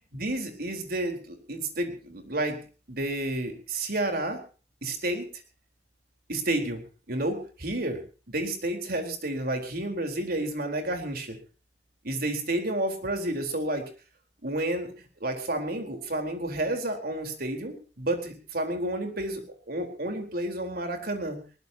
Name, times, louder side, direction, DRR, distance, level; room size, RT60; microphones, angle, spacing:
voice 1, 0.1-2.6 2.9-4.4 4.8-5.3 6.3-8.0 8.3-11.4 12.0-13.8 14.4-21.4, right 1 dB, 60° right, 5 dB, 4.2 m, -30 dB
21.0 x 19.0 x 2.9 m, 0.36 s
head